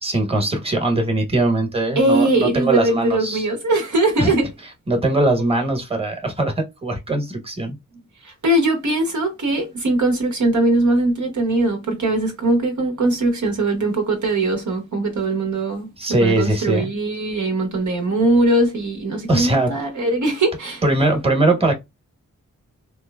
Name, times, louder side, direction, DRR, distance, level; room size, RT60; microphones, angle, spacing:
voice 1, 0.0-3.4 4.2-4.3 4.9-7.8 16.0-16.9 19.3-19.8 20.8-21.7, right 2 dB, 15° right, 1.1 m, -20 dB
voice 2, 2.0-4.5 8.2-20.8, right 2 dB, 60° right, 0.9 m, -20 dB
3.0 x 2.0 x 2.2 m
cardioid pair, 45°, 33 cm